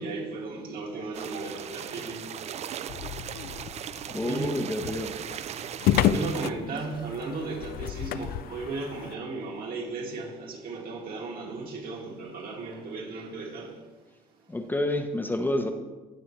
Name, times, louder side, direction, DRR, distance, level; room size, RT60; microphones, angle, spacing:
voice 1, 0.0-2.3 4.2-4.6 6.0-13.8, right 3 dB, 60° right, 2.2 m, -35 dB
sound 1, 1.1-6.5, right 9 dB, 40° right, 0.4 m, -38 dB
sound 2, 2.9-9.2, left 11 dB, 65° left, 0.4 m, -31 dB
voice 2, 4.1-5.1 14.5-15.7, left 1 dB, 10° left, 0.7 m, -29 dB
16.5 x 6.2 x 3.1 m
cardioid pair, 110°, 17 cm